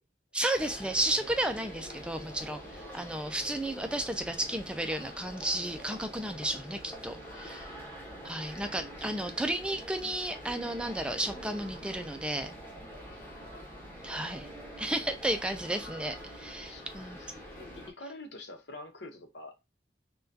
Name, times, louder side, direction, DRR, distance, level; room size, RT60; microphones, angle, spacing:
voice 1, 0.3-7.7 8.2-12.5 14.0-14.5 14.8-17.2, right 1 dB, 5° right, 0.3 m, -33 dB
sound 1, 0.5-17.9, equal, 10° left, 1.0 m, -45 dB
voice 2, 16.7-17.3 17.6-19.6, left 2 dB, 80° left, 1.0 m, -47 dB
5.6 x 2.3 x 2.7 m
head